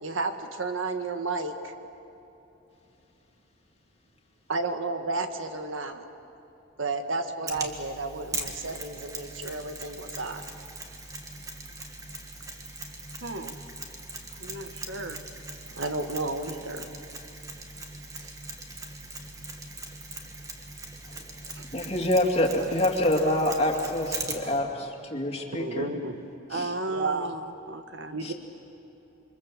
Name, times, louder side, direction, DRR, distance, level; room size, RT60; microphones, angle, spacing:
voice 1, 0.0-1.7 4.5-6.0 6.8-10.5 15.7-16.9 25.5-26.1 26.9-27.3 28.1-28.3, right 3 dB, 80° right, 7 dB, 1.6 m, -32 dB
Mechanisms, 7.5-24.6, right 2 dB, 15° right, 1.8 m, -40 dB
voice 2, 13.2-13.6 14.3-15.2 18.1-18.4 21.5-21.7 24.4-24.5 26.5-28.2, right 2 dB, 65° right, 8 dB, 1.2 m, -36 dB
voice 3, 21.0-25.9 26.5-26.7 28.2-28.3, left 1 dB, 30° left, 1 dB, 2.6 m, -27 dB
27.5 x 24.0 x 7.4 m, 2.9 s
head